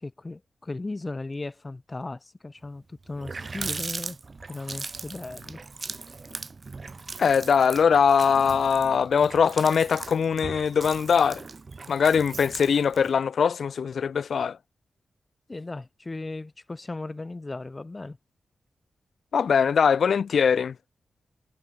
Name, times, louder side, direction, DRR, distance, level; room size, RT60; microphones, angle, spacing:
voice 1, 0.0-4.2 4.5-5.6 15.5-18.2, left 2 dB, 30° left, 5.2 m, -36 dB
Water tap faucet, 2.7-2.8 3.0-13.1, right 4 dB, 45° right, 2.7 m, -39 dB
voice 2, 7.2-11.4 11.9-14.6 19.3-20.7, left 6 dB, 75° left, 0.4 m, -22 dB
cardioid pair, 75°, 0 cm